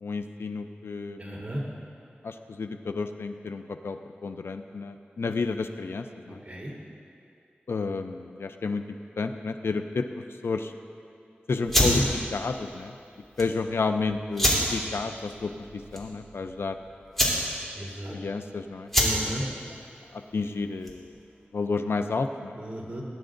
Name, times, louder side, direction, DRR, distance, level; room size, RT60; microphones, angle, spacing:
voice 1, 0.0-1.4 2.2-4.0 4.2-6.4 7.7-8.8 9.2-10.1 10.4-10.7 11.5-12.0 12.3-12.9 13.4-15.5 15.9-16.8 18.1-18.9 20.3-21.1 21.5-22.6, left 4 dB, 90° left, 7 dB, 0.5 m, -31 dB
voice 2, 1.2-1.6 6.5-6.7 11.6-12.0 17.8-18.1 19.0-19.4 22.6-23.0, right 1 dB, 35° right, -5 dB, 3.2 m, -34 dB
sound 1, 11.6-21.2, equal, 5° left, 3.2 m, -28 dB
19.5 x 10.5 x 2.6 m, 2.4 s
wide cardioid pair, 55°, 4 cm